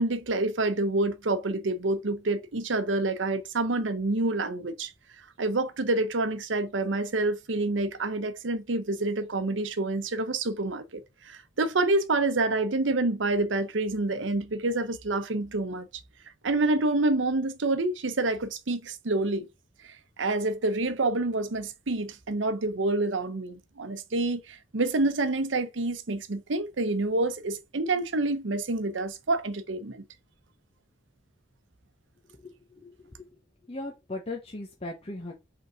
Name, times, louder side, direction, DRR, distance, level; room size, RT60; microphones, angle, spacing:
voice 1, 0.0-4.9 5.4-15.9 16.4-19.5 20.2-30.0, right 2 dB, 80° right, 0.8 m, -27 dB
voice 2, 32.3-33.3 33.6-35.3, left 2 dB, 30° left, 1.1 m, -38 dB
5.3 x 3.9 x 4.9 m
head